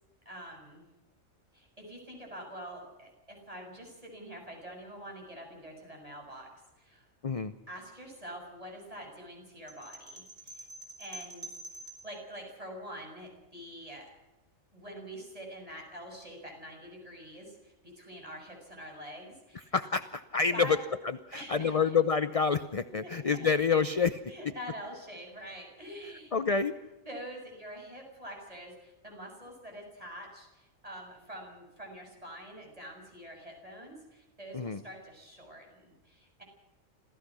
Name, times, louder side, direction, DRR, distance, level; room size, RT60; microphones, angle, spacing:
voice 1, 0.3-0.8 1.5-6.5 6.8-7.1 7.7-10.7 11.0-11.6 12.0-14.1 14.7-19.7 20.5-20.8 21.3-22.0 23.0-23.5 24.3-26.3 27.1-36.4, equal, 25° right, 1 dB, 7.1 m, -46 dB
sound 1, 9.7-12.1, right 1 dB, 75° right, 4.9 m, -46 dB
voice 2, 19.7-20.8 21.3-24.2 26.3-26.7 34.5-34.8, left 5 dB, 35° left, 11 dB, 0.7 m, -27 dB
26.5 x 16.0 x 6.2 m, 1.0 s
omnidirectional pair, 1.3 m